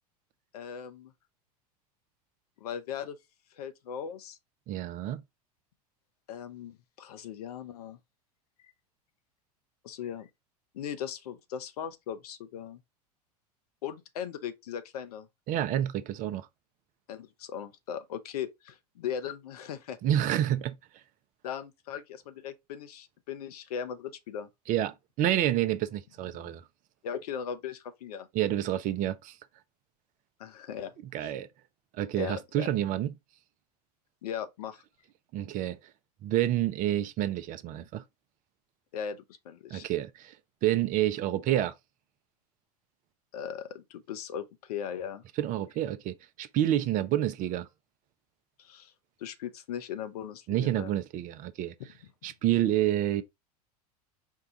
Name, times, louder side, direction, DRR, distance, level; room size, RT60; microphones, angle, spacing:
voice 1, 0.5-1.1 2.6-3.2 3.6-4.4 6.3-8.0 9.8-10.3 10.7-12.8 13.8-15.3 17.1-20.0 21.4-24.5 27.0-28.3 30.4-31.3 32.1-32.7 34.2-34.8 38.9-39.2 39.4-39.9 43.3-45.2 48.6-48.9 49.2-50.9, left 8 dB, 70° left, 0.8 m, -38 dB
voice 2, 4.7-5.2 15.5-16.5 20.0-20.7 24.7-26.6 28.3-29.4 31.1-31.5 32.0-33.1 35.3-35.8 36.2-38.0 39.7-40.4 40.6-41.7 45.4-47.7 50.5-51.7 52.2-53.2, right 12 dB, 40° right, 0.6 m, -28 dB
4.6 x 2.3 x 3.9 m
hypercardioid pair, 85°, 20 cm